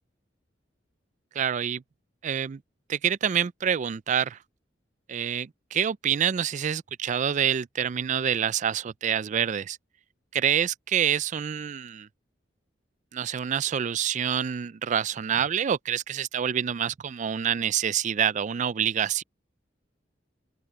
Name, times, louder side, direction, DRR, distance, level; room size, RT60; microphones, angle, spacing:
voice 1, 1.3-1.8 2.2-2.6 2.9-4.4 5.1-9.8 10.3-12.1 13.1-19.2, right 8 dB, 40° right, 0.4 m, -27 dB
open air
head